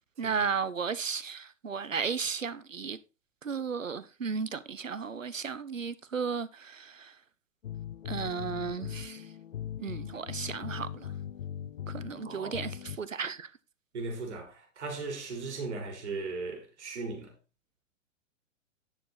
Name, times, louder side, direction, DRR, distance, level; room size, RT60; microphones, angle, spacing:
voice 1, 0.2-3.0 3.4-7.1 8.0-9.2 9.8-11.1 11.9-13.5, right 6 dB, 85° right, 0.9 m, -34 dB
sound 1, 7.6-13.0, left 10 dB, 60° left, 0.7 m, -40 dB
voice 2, 12.2-12.6 13.9-17.3, right 3 dB, 60° right, 3.9 m, -37 dB
10.0 x 6.8 x 4.0 m
figure-of-eight pair, 110°, 38 cm